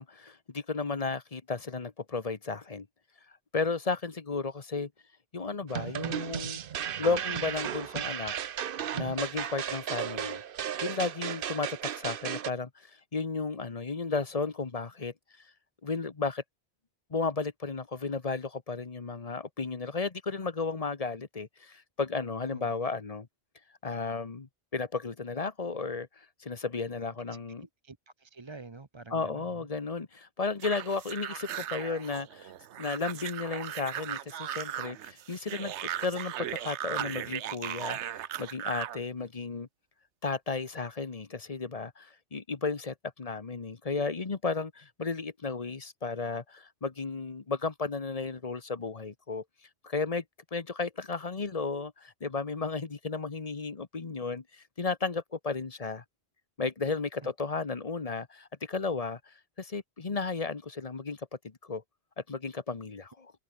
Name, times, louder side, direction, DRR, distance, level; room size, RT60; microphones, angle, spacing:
voice 1, 0.0-2.9 3.5-4.9 5.3-6.6 7.0-8.3 8.9-10.4 10.8-15.1 15.8-16.4 17.1-23.3 23.8-27.7 29.1-32.5 32.8-39.7 40.2-49.4 49.8-50.2 50.5-56.0 56.6-61.8 62.3-63.3, left 4 dB, 35° left, 1.2 m, -34 dB
sound 1, 5.7-12.5, right 9 dB, 55° right, 0.8 m, -35 dB
voice 2, 27.8-29.7 57.2-57.3, right 3 dB, 25° right, 1.0 m, -47 dB
sound 2, 30.6-39.0, right 11 dB, 80° right, 1.0 m, -37 dB
omnidirectional pair, 1.2 m